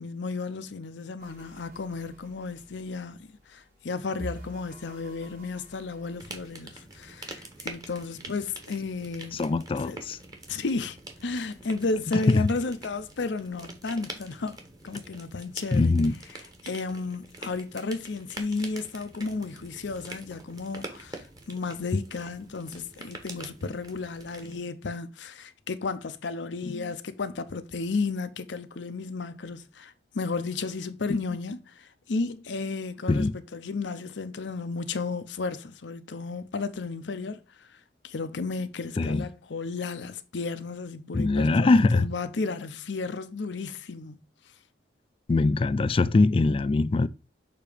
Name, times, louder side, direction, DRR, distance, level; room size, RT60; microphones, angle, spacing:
voice 1, 0.0-9.5 9.8-10.0 10.5-14.6 14.8-16.0 16.6-37.4 38.0-44.2, left 3 dB, 85° left, 0.6 m, -33 dB
sound 1, 1.2-6.5, right 1 dB, 50° right, 1.9 m, -46 dB
sound 2, 6.2-24.6, right 2 dB, 20° right, 1.1 m, -45 dB
voice 2, 9.3-10.2 12.1-12.5 15.7-16.2 26.6-26.9 31.1-31.2 33.1-33.3 39.0-39.3 41.1-42.1 45.3-47.1, left 3 dB, 30° left, 0.3 m, -23 dB
6.8 x 2.9 x 4.9 m
head